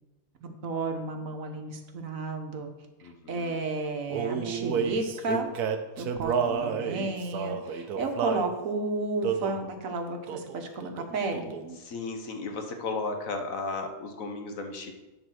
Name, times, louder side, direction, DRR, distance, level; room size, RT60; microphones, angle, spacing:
voice 1, 0.4-2.7 3.3-5.5 6.0-11.5, right 3 dB, 65° right, 5 dB, 1.3 m, -32 dB
voice 2, 3.0-3.6 6.2-7.2 11.8-14.9, left 3 dB, 65° left, 5 dB, 1.3 m, -36 dB
Male singing, 4.1-8.5 9.2-9.7 10.3-10.6 10.8-11.8, right 7 dB, 80° right, 1.2 m, -30 dB
11.0 x 3.9 x 6.2 m, 1.1 s
omnidirectional pair, 1.6 m